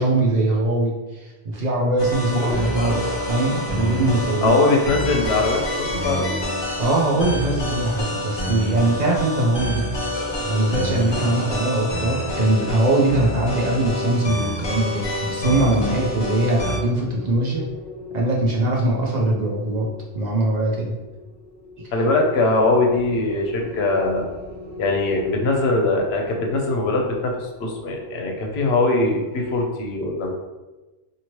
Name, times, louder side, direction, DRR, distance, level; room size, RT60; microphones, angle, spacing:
voice 1, 0.0-4.6 6.8-9.9 10.4-17.6 18.1-19.9 20.1-21.0, right 2 dB, 50° right, -2 dB, 0.6 m, -21 dB
sound 1, 2.0-16.8, left 1 dB, 35° left, 0.5 m, -27 dB
voice 2, 4.4-6.4 21.9-24.3 24.8-30.3, left 2 dB, 85° left, 1 dB, 0.9 m, -21 dB
sound 2, 15.9-29.6, left 3 dB, 10° right, 0.8 m, -38 dB
2.9 x 2.7 x 2.9 m, 1.1 s
omnidirectional pair, 1.1 m